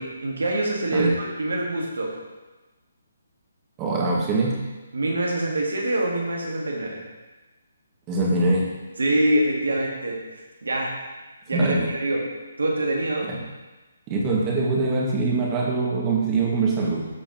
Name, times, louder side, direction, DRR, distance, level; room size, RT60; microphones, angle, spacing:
voice 1, 0.0-2.2 4.9-7.0 9.0-10.9 11.5-12.2 12.6-13.3, right 1 dB, 80° right, -1 dB, 1.7 m, -25 dB
voice 2, 3.8-4.6 8.1-8.7 11.5-11.9 13.3-13.4 14.1-17.1, right 3 dB, 20° right, -4 dB, 1.9 m, -23 dB
13.5 x 4.4 x 3.0 m, 1.2 s
figure-of-eight pair, 145°, 0 cm